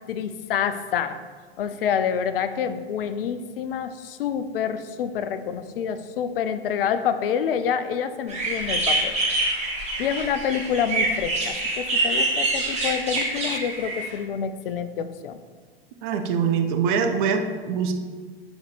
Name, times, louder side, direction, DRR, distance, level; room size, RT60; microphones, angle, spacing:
voice 1, 0.1-1.2 1.6-9.1 10.0-15.4, left 8 dB, 65° left, 11 dB, 0.5 m, -27 dB
sound 1, 8.3-14.2, right 2 dB, 20° right, 1.7 m, -26 dB
voice 2, 16.0-17.9, right 6 dB, 50° right, 5 dB, 0.8 m, -23 dB
4.9 x 4.1 x 4.8 m, 1.5 s
figure-of-eight pair, 90°, 30 cm